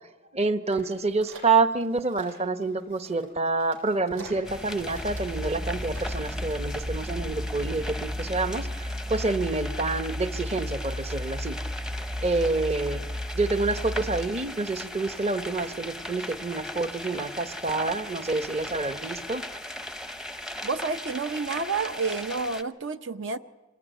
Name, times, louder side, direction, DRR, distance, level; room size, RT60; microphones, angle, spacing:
voice 1, 0.3-11.6 12.2-13.0 13.3-19.4, right 3 dB, 30° right, 11 dB, 0.9 m, -27 dB
sound 1, 0.7-6.7, right 3 dB, 85° right, 7.3 m, -48 dB
sound 2, 4.4-22.6, left 1 dB, 5° right, 0.7 m, -38 dB
sound 3, 5.0-14.2, left 1 dB, 45° right, 6.1 m, -34 dB
voice 2, 20.6-23.4, right 4 dB, 65° right, 10 dB, 0.7 m, -29 dB
26.5 x 19.0 x 9.1 m, 1.2 s
head